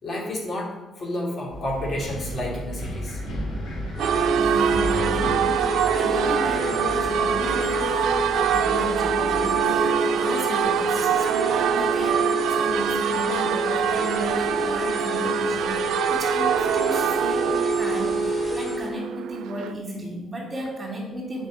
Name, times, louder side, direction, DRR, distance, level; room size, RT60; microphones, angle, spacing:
voice 1, 0.0-0.7 1.0-3.2 4.7-4.9, left 1 dB, 45° left, -2 dB, 3.0 m, -30 dB
Wind, 1.5-9.6, equal, 75° left, 3.1 m, -34 dB
sound 1, 4.0-18.9, equal, 25° left, 3.3 m, -28 dB
Church bell, 4.0-19.7, right 9 dB, 80° right, 0.3 m, -25 dB
voice 2, 4.3-5.6 5.9-15.8 16.1-21.5, right 1 dB, 30° right, -1 dB, 3.5 m, -34 dB
7.9 x 5.5 x 7.4 m, 1.1 s
cardioid pair, 90°, 0 cm